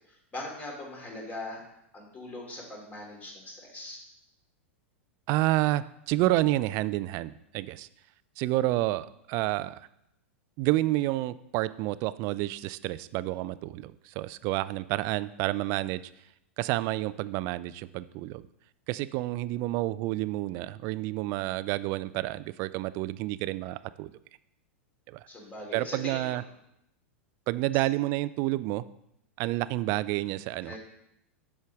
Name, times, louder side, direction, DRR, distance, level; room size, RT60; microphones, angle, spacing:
voice 1, 0.1-1.6 1.9-4.0 25.3-26.4 30.6-30.8, left 2 dB, 20° left, -1 dB, 2.8 m, -41 dB
voice 2, 5.3-7.9 8.4-9.8 10.6-16.0 16.6-18.5 18.9-24.1 25.1-25.3 25.7-26.4 27.5-28.8 29.4-30.8, right 17 dB, 40° right, 17 dB, 0.3 m, -29 dB
8.2 x 6.3 x 3.5 m, 0.81 s
figure-of-eight pair, 95°, 7 cm